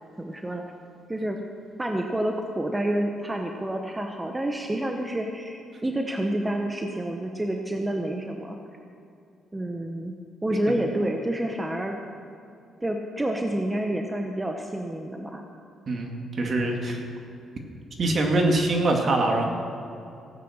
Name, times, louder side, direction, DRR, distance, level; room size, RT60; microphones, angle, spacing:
voice 1, 0.2-0.6 1.1-1.4 1.8-8.6 9.5-10.1 10.4-12.0 12.8-15.4, right 1 dB, 15° right, 3 dB, 1.1 m, -28 dB
voice 2, 15.9-17.0 18.0-19.4, right 2 dB, 45° right, 2 dB, 2.2 m, -23 dB
16.0 x 9.3 x 6.5 m, 2.6 s
cardioid pair, 90°, 0 cm